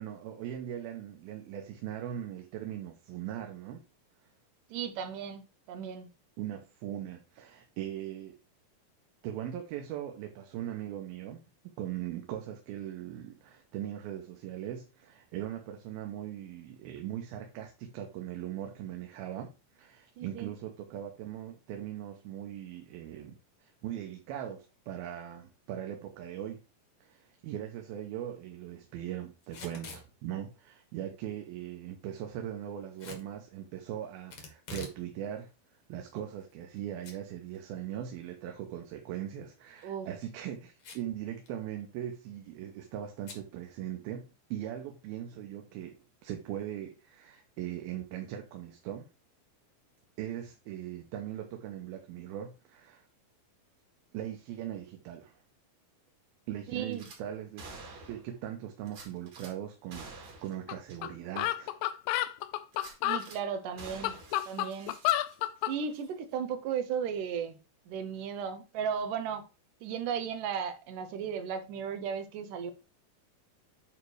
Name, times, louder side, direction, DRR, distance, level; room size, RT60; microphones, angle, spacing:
voice 1, 0.0-3.8 6.4-8.4 9.2-11.4 11.8-26.6 27.0-35.5 35.9-49.1 50.2-53.1 54.1-55.4 56.5-57.6 58.1-61.8, right 11 dB, 85° right, 2.8 m, -40 dB
voice 2, 4.7-5.4 5.7-6.1 20.2-20.5 39.8-40.1 56.7-57.1 63.0-64.2 64.5-64.9 65.7-67.6 67.9-69.5 69.8-72.7, right 7 dB, 70° right, 2.4 m, -35 dB
Packing tape duct tape / Tearing, 29.4-30.1 33.0-33.3 34.3-35.0 35.4-35.5 36.2-36.8 37.0-37.1 37.5-37.6 39.6-39.9 40.8-41.2 41.5-41.6 41.8-42.1 43.2-43.4, left 3 dB, 50° left, 2.0 m, -45 dB
Gunshot gunfire / Glass, 56.9-57.2 57.6-58.3 58.9-59.5 59.9-60.6 60.9-61.0 61.4-61.5 62.7-63.4 63.8-65.6 65.9-66.1, right 3 dB, 55° right, 3.0 m, -48 dB
sound 1, 60.7-60.8 61.0-61.1 61.4-63.3 63.8-65.8, left 14 dB, 80° left, 2.1 m, -30 dB
9.2 x 3.2 x 4.7 m
omnidirectional pair, 4.2 m